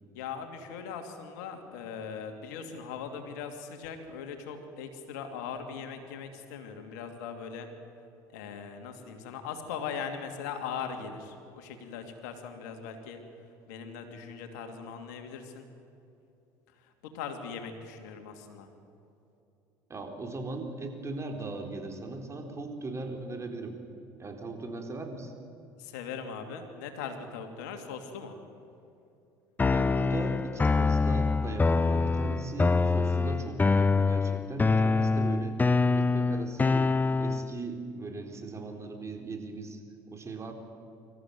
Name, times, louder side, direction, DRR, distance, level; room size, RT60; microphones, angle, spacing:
voice 1, 0.1-7.7 8.3-13.2 13.7-15.7 16.8-18.7 25.8-28.4, left 6 dB, 75° left, 6 dB, 2.7 m, -40 dB
voice 2, 19.9-23.7 24.2-25.3 29.7-35.6 35.9-36.9 37.2-39.8 40.1-40.5, right 2 dB, 30° right, 4 dB, 4.1 m, -38 dB
sound 1, 29.6-37.6, left 4 dB, 20° left, 0.7 m, -25 dB
25.5 x 14.5 x 9.4 m, 2.8 s
hypercardioid pair, 70°, 9 cm